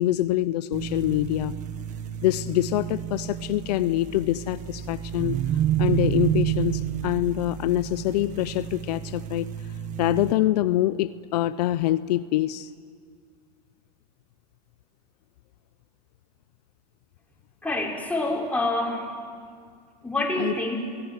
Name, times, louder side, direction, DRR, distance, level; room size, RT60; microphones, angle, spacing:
voice 1, 0.0-1.5 2.2-5.4 5.8-9.5 10.0-12.7 20.4-20.5, left 14 dB, 70° left, 14 dB, 0.7 m, -25 dB
sound 1, 0.7-10.3, right 11 dB, 35° right, 1.8 m, -30 dB
voice 2, 17.6-19.1 20.0-20.8, left 2 dB, 5° left, -1 dB, 5.2 m, -26 dB
29.5 x 19.0 x 9.8 m, 2.1 s
supercardioid pair, 125°, 21 cm